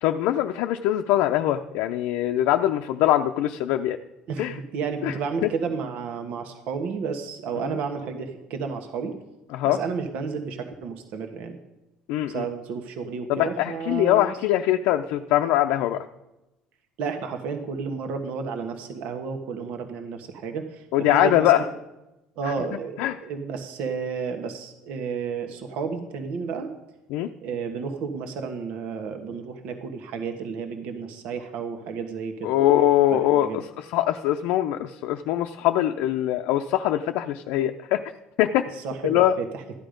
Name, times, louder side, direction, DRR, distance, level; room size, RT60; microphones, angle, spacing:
voice 1, 0.0-4.0 4.4-4.6 5.0-5.1 5.4-5.5 7.7-7.8 9.5-9.8 12.1-12.4 13.3-16.0 20.9-21.6 22.4-22.5 23.0-23.1 27.1-27.3 32.4-33.6 33.9-38.0 38.4-38.7 39.0-39.3, left 13 dB, 80° left, 4 dB, 0.6 m, -22 dB
voice 2, 4.3-9.1 9.6-11.6 12.3-14.4 17.0-21.7 22.4-26.7 27.4-32.5 33.1-33.6 38.8-39.7, right 5 dB, 65° right, 6 dB, 1.4 m, -32 dB
13.5 x 10.0 x 5.2 m, 0.96 s
cardioid pair, 140°, 3 cm